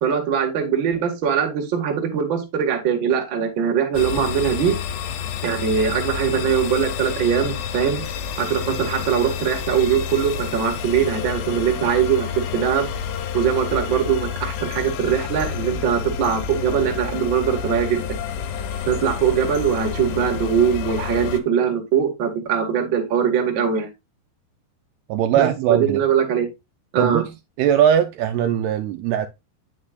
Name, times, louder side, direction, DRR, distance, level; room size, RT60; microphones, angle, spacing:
voice 1, 0.0-4.7 5.4-8.0 8.4-12.9 13.3-18.2 18.9-23.9 25.4-26.5 26.9-27.2, right 7 dB, 45° right, 1.6 m, -21 dB
sound 1, 3.9-21.4, left 7 dB, 80° left, 3.0 m, -29 dB
voice 2, 25.1-26.0 27.0-27.3 27.6-29.3, right 9 dB, 80° right, 2.4 m, -20 dB
9.6 x 6.5 x 2.5 m
omnidirectional pair, 5.0 m